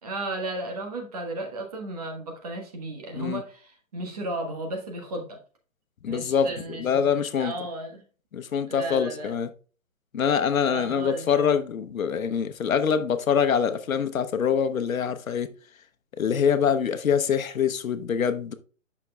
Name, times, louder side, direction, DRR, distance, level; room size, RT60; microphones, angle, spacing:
voice 1, 0.0-5.4 6.0-7.0 7.4-8.0 8.7-9.4 10.6-11.5, right 1 dB, 30° right, 1.2 m, -34 dB
voice 2, 6.0-6.5 6.8-7.5 8.3-9.5 10.1-15.5 16.2-18.5, left 7 dB, 90° left, 0.9 m, -24 dB
8.3 x 6.1 x 2.2 m
hypercardioid pair, 170°, 40 cm